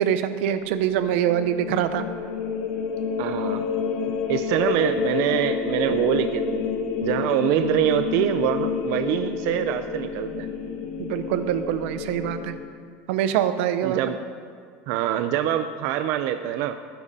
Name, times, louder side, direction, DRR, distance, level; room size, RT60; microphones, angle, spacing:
voice 1, 0.0-2.0 11.0-12.5 13.1-14.0, right 10 dB, 80° right, 11 dB, 0.8 m, -24 dB
sound 1, 0.6-12.5, left 6 dB, 85° left, 1.5 m, -29 dB
voice 2, 3.2-3.7 4.3-6.7 7.0-10.5 13.8-14.2 14.9-16.8, right 11 dB, 55° right, 8 dB, 0.5 m, -24 dB
17.0 x 10.5 x 4.2 m, 2.2 s
cardioid pair, 175°, 6 cm